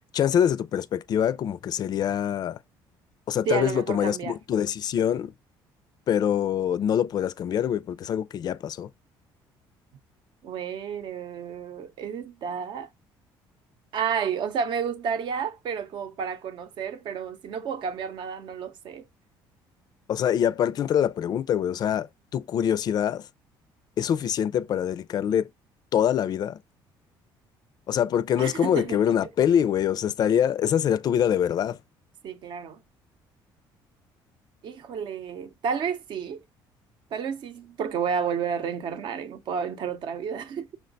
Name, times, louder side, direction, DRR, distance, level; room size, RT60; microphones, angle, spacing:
voice 1, 0.1-2.6 3.3-5.3 6.1-8.9 20.1-22.1 22.3-23.3 24.0-25.5 25.9-26.6 27.9-31.8, left 9 dB, 45° left, 0.4 m, -24 dB
voice 2, 3.5-4.4 10.4-12.9 13.9-19.0 28.4-29.0 32.2-32.8 34.6-36.4 37.1-40.8, right 7 dB, 60° right, 0.7 m, -31 dB
6.1 x 2.2 x 3.9 m
cardioid pair, 110°, 9 cm